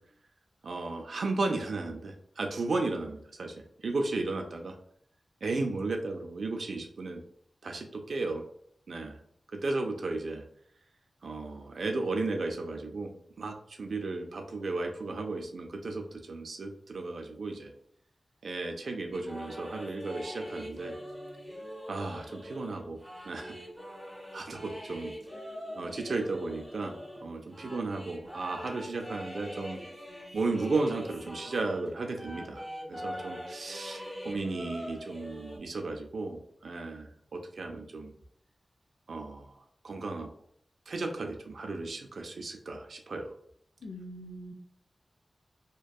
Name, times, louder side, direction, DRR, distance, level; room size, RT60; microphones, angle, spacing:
voice 1, 0.6-3.5 3.8-4.8 5.4-7.2 7.6-8.4 8.9-9.2 9.6-10.4 11.2-17.7 18.4-20.9 21.9-23.0 23.3-23.6 24.3-25.1 25.8-27.0 27.2-29.8 30.3-38.1 39.1-39.5 39.8-40.3 40.9-43.3, right 3 dB, 75° right, 3 dB, 0.3 m, -34 dB
sound 1, 19.1-31.9 32.2-35.6, equal, 10° left, 1.3 m, -43 dB
voice 2, 43.8-44.5, equal, 80° left, 4 dB, 0.3 m, -43 dB
2.6 x 2.2 x 2.2 m, 0.66 s
wide cardioid pair, 80°, 0 cm